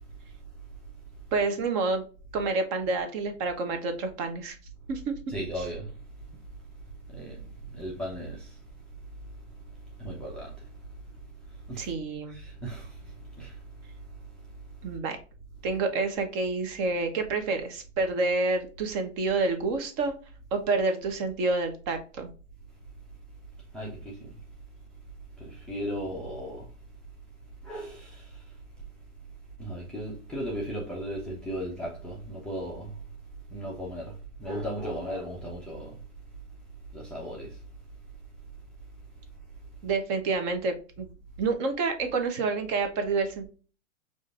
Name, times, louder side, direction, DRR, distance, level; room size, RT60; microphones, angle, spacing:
voice 1, 1.3-2.0 2.3-4.6 4.9-5.2 11.8-12.4 14.8-15.2 15.6-20.1 20.5-22.3 39.8-41.1 41.4-43.5, right 3 dB, 30° right, 0.8 m, -28 dB
voice 2, 5.3-5.9 7.1-7.4 7.7-8.5 10.0-10.5 11.7-11.9 12.3-13.6 23.7-24.3 25.4-26.7 27.6-28.2 29.6-33.0 33.5-34.1 34.4-36.0 36.9-37.5, equal, ahead, 0.5 m, -36 dB
5.0 x 2.6 x 2.4 m
hypercardioid pair, 115°, 39 cm